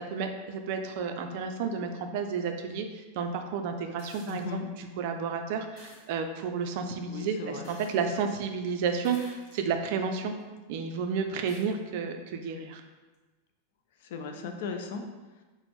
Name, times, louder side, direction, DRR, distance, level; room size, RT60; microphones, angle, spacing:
voice 1, 0.1-10.3 10.7-12.8, right 5 dB, 60° right, 6 dB, 0.4 m, -31 dB
sound 1, 4.0-4.5 5.8-6.1 7.6-8.3 9.0-9.7 10.4-10.5 11.5-11.7 13.1-13.2, left 2 dB, 45° left, 0.8 m, -52 dB
voice 2, 4.2-4.7 7.1-7.7 14.0-15.0, left 5 dB, 70° left, 5 dB, 0.4 m, -37 dB
4.1 x 2.0 x 3.0 m, 1.2 s
hypercardioid pair, 120°, 0 cm